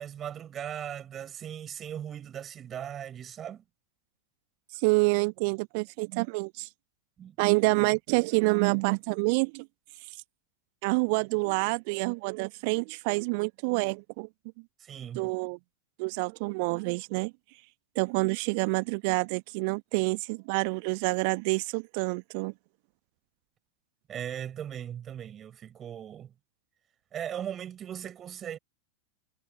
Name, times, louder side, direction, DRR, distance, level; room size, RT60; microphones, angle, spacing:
voice 1, 0.0-3.6 7.2-7.4 14.8-15.3 24.1-26.3 27.1-28.6, right 9 dB, 25° right, 5.6 m, -38 dB
voice 2, 4.8-6.7 7.4-9.7 10.8-14.3 15.1-15.6 16.0-17.3 18.0-22.5, right 32 dB, 45° right, 1.0 m, -27 dB
figure-of-eight pair, 90°, 0 cm